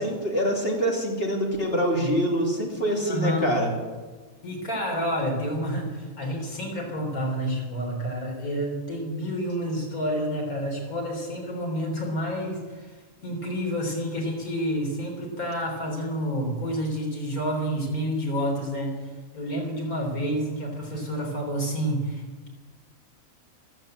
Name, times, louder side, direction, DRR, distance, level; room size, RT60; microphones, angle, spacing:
voice 1, 0.0-3.7, equal, 40° left, 0 dB, 3.1 m, -25 dB
voice 2, 3.0-3.5 4.4-22.5, equal, 75° left, 0 dB, 4.0 m, -29 dB
15.0 x 12.0 x 7.8 m, 1.3 s
omnidirectional pair, 1.5 m